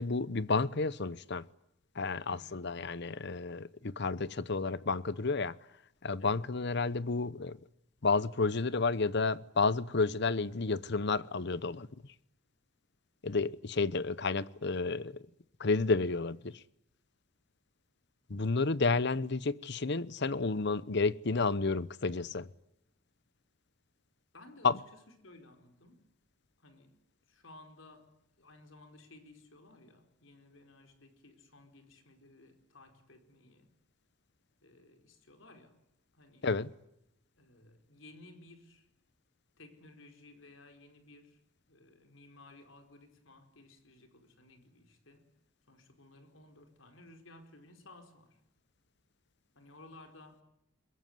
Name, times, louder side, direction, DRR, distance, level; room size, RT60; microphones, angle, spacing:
voice 1, 0.0-1.5 2.0-5.6 6.0-7.6 8.0-11.9 13.2-15.3 15.6-16.6 18.3-22.5 24.6-24.8 36.4-36.7, left 4 dB, 60° left, 0.9 m, -31 dB
voice 2, 2.3-2.7 6.2-6.4 24.3-26.0 26.6-26.9 27.3-28.1 28.4-33.7 34.6-35.8 36.1-36.5 37.4-38.9 39.6-41.4 41.7-45.3 45.7-48.4 49.5-50.4, left 2 dB, 75° left, 4.6 m, -57 dB
23.0 x 22.0 x 9.6 m
head